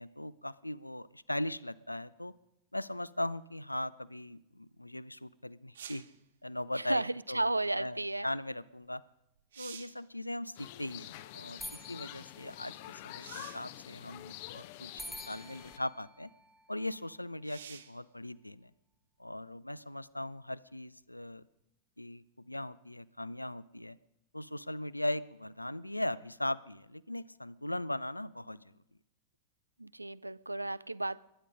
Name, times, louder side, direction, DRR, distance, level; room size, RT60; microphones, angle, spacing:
voice 1, 0.0-2.3 2.7-6.0 6.4-9.0 9.6-16.3 16.7-18.7 19.2-21.5 22.0-24.0 24.3-28.7, left 1 dB, 85° left, 19 dB, 0.5 m, -39 dB
sound 1, 5.7-6.2 8.9-9.0 9.4-10.1 13.2-13.7 14.7-14.8 17.4-18.0 21.6-21.7, right 8 dB, 65° right, 0.9 m, -49 dB
voice 2, 6.9-8.3 29.8-31.2, right 2 dB, 85° right, 20 dB, 0.4 m, -33 dB
sound 2, 10.6-15.8, left 16 dB, 50° left, 0.7 m, -47 dB
sound 3, 11.3-13.3 15.0-17.4, right 1 dB, ahead, 1.0 m, -49 dB
21.0 x 9.9 x 5.1 m, 0.83 s
figure-of-eight pair, 90°, 0 cm